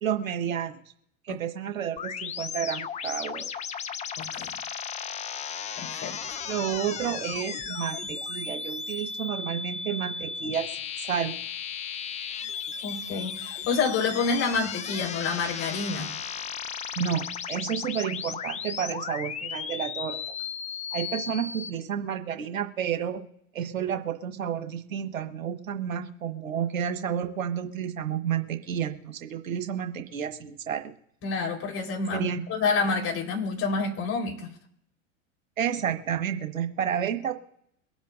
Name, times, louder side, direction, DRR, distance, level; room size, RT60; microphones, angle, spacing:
voice 1, 0.0-0.7 1.3-3.5 6.5-10.6 11.0-11.3 17.0-20.2 20.9-23.2 23.5-30.8 32.1-32.4 35.6-37.3, right 8 dB, 75° right, 7 dB, 1.5 m, -30 dB
sound 1, 2.0-21.7, left 7 dB, 15° left, 0.7 m, -35 dB
voice 2, 4.2-4.5 5.8-6.4 12.8-16.1 31.2-34.5, left 4 dB, 35° left, 0 dB, 4.1 m, -28 dB
23.5 x 8.1 x 2.6 m, 0.73 s
figure-of-eight pair, 95°, 41 cm